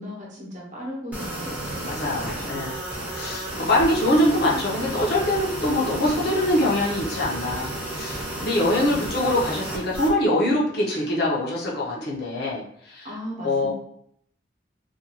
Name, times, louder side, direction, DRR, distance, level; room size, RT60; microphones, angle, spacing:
voice 1, 0.0-2.7 3.5-4.0 8.3-9.1 13.0-13.7, equal, 45° right, -3 dB, 0.8 m, -37 dB
sound 1, 1.1-10.1, right 1 dB, 10° right, 0.6 m, -32 dB
voice 2, 1.8-2.7 3.1-13.1 13.4-13.7, left 1 dB, 60° left, -4 dB, 0.7 m, -23 dB
2.5 x 2.3 x 2.8 m, 0.68 s
head